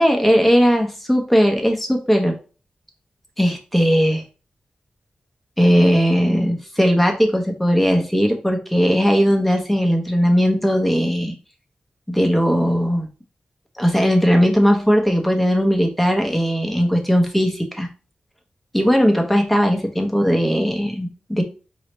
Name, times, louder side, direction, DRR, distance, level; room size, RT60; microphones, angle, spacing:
voice 1, 0.0-2.3 3.4-4.2 5.6-11.3 12.1-13.1 13.8-17.9 18.7-21.4, equal, 5° left, 2 dB, 1.0 m, -18 dB
4.6 x 3.2 x 3.1 m, 0.35 s
wide cardioid pair, 95°, 3 cm